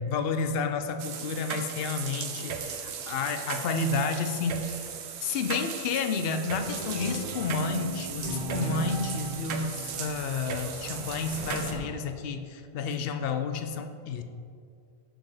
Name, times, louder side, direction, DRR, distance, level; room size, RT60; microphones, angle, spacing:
voice 1, 0.0-4.9 5.2-14.2, left 5 dB, 70° left, 7 dB, 0.8 m, -31 dB
sound 1, 1.0-11.7, right 7 dB, 90° right, 0.9 m, -37 dB
sound 2, 6.6-10.8, right 5 dB, 65° right, 1.7 m, -37 dB
sound 3, 6.7-12.2, left 1 dB, 30° left, 1.2 m, -46 dB
6.5 x 6.4 x 4.8 m, 2.3 s
omnidirectional pair, 1.1 m